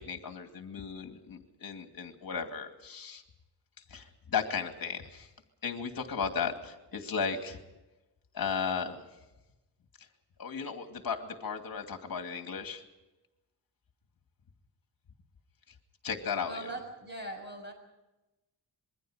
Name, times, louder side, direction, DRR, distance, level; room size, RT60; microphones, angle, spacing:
voice 1, 0.0-3.2 3.9-5.3 5.6-7.6 8.3-9.0 10.4-12.8 16.0-16.7, left 6 dB, 50° left, 5 dB, 2.5 m, -35 dB
voice 2, 16.4-17.7, right 1 dB, 25° right, 3 dB, 6.7 m, -40 dB
26.5 x 22.5 x 5.1 m, 1.0 s
wide cardioid pair, 170°, 43 cm